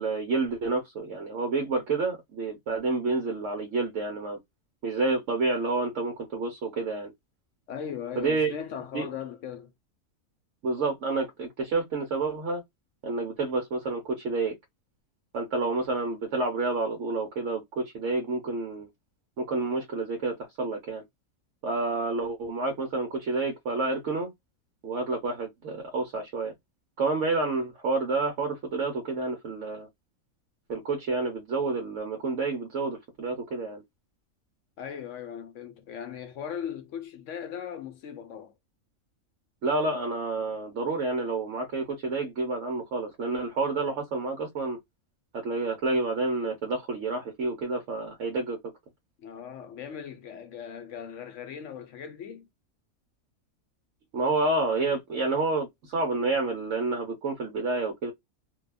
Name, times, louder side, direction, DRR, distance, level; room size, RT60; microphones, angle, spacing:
voice 1, 0.0-4.4 4.8-7.1 8.2-8.5 8.9-9.1 10.6-12.6 13.0-14.5 15.3-18.9 19.4-21.0 21.6-24.3 24.8-26.5 27.0-29.9 30.7-33.8 39.6-44.8 45.3-48.6 54.1-58.1, right 3 dB, 65° right, 1.1 m, -29 dB
voice 2, 7.7-9.7 34.8-38.5 49.2-52.5, left 8 dB, 70° left, 0.9 m, -38 dB
2.7 x 2.2 x 2.3 m
omnidirectional pair, 1.4 m